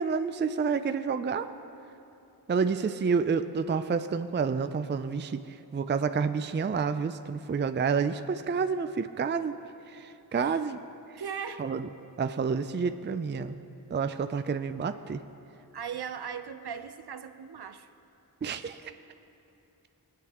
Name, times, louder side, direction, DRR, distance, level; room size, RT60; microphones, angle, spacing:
voice 1, 0.0-1.5 2.5-5.4 5.7-9.5 9.9-10.8 11.6-11.9 12.2-13.6 13.9-15.2 18.4-18.8, right 5 dB, 30° right, 10 dB, 0.4 m, -29 dB
voice 2, 11.2-11.7 15.7-17.9, right 7 dB, 70° right, 9 dB, 0.7 m, -38 dB
23.0 x 8.5 x 3.0 m, 2.9 s
wide cardioid pair, 45°, 41 cm